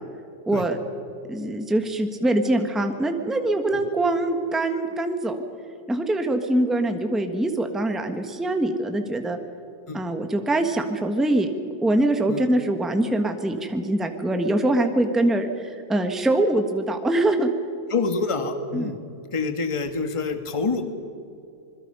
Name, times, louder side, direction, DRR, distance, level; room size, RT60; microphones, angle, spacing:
voice 1, 0.5-0.8 1.3-5.4 5.9-9.4 9.9-11.5 11.8-17.5 18.7-18.9, right 1 dB, ahead, 5 dB, 1.1 m, -23 dB
voice 2, 17.9-19.0 19.3-20.9, left 4 dB, 20° left, 7 dB, 1.3 m, -27 dB
26.5 x 21.5 x 5.6 m, 2.6 s
omnidirectional pair, 2.1 m